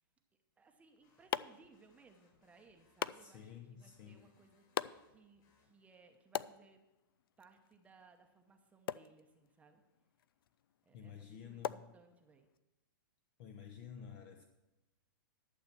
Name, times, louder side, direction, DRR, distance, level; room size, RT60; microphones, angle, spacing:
sound 1, 0.6-12.6, left 10 dB, 75° left, 0.4 m, -46 dB
voice 1, 0.6-4.7 5.1-6.9 7.4-9.8 10.9-12.5, right 4 dB, 10° right, 5 dB, 0.8 m, -64 dB
sound 2, 1.0-6.2, left 3 dB, 55° left, 3.8 m, -75 dB
voice 2, 3.1-4.3 10.9-11.9 13.4-14.5, left 8 dB, 40° left, 6 dB, 0.8 m, -52 dB
11.5 x 6.8 x 6.0 m, 0.97 s
hypercardioid pair, 145°, 12 cm